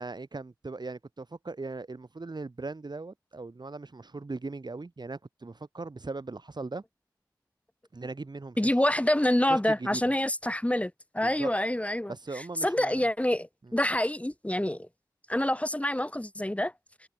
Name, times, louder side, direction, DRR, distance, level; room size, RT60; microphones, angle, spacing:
voice 1, 0.0-6.8 7.9-8.7 9.5-10.0 11.2-11.5 12.1-13.0 13.7-13.8, right 3 dB, 70° right, 3.2 m, -39 dB
voice 2, 8.6-14.9 15.3-16.7, left 1 dB, 15° left, 2.1 m, -27 dB
wide cardioid pair, 45°, 8 cm